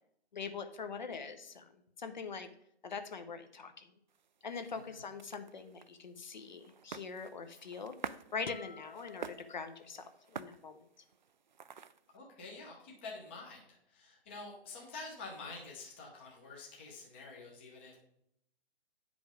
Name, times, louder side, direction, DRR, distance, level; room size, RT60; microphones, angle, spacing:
voice 1, 0.3-2.5 2.8-3.9 4.4-7.9 8.3-10.8, left 5 dB, 45° left, 8 dB, 0.8 m, -43 dB
sound 1, 4.1-12.2, right 6 dB, 45° right, 0.4 m, -50 dB
sound 2, 8.4-10.3, left 8 dB, 65° left, 0.5 m, -51 dB
voice 2, 12.1-18.0, left 3 dB, 10° left, -1 dB, 0.7 m, -48 dB
9.2 x 5.2 x 5.0 m, 0.72 s
hypercardioid pair, 165°, 32 cm